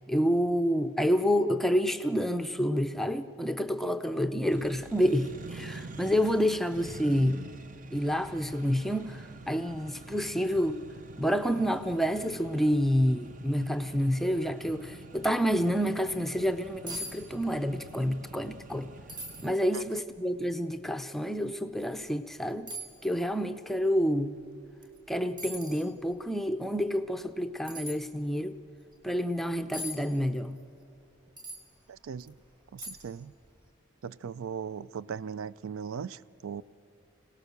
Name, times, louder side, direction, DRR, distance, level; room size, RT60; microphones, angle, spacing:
voice 1, 0.1-7.4 7.9-10.8 11.2-18.9 19.4-22.7 23.0-24.4 25.1-28.6 29.0-30.6, equal, ahead, 0.5 m, -28 dB
Accelerating revving vroom, 4.5-19.5, right 3 dB, 40° right, 0.6 m, -47 dB
sound 1, 16.9-17.2 17.4-18.0 18.3-18.4 19.1-19.5 20.2-20.3 21.7-21.9 22.7-22.9 24.8-25.0 25.4-25.9 27.7-28.0 29.7-30.0 31.4-31.6 32.2-32.3 32.8-33.2 33.5-33.6, equal, 20° right, 2.0 m, -40 dB
voice 2, 31.9-32.4 32.7-33.3 34.0-36.6, right 6 dB, 85° right, 0.4 m, -38 dB
25.5 x 17.5 x 6.8 m
head